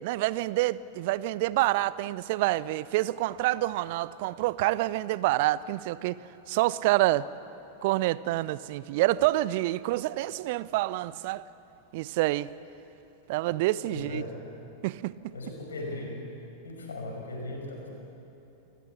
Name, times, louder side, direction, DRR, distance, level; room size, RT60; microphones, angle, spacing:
voice 1, 0.0-6.2 6.5-7.3 7.8-11.4 11.9-12.5 13.3-14.2 14.8-15.3, right 17 dB, 50° right, 19 dB, 0.5 m, -27 dB
voice 2, 13.8-14.3 15.3-16.1 16.6-17.9, left 2 dB, 70° left, 0 dB, 5.4 m, -37 dB
27.5 x 14.5 x 8.2 m, 2.9 s
figure-of-eight pair, 90°, 0 cm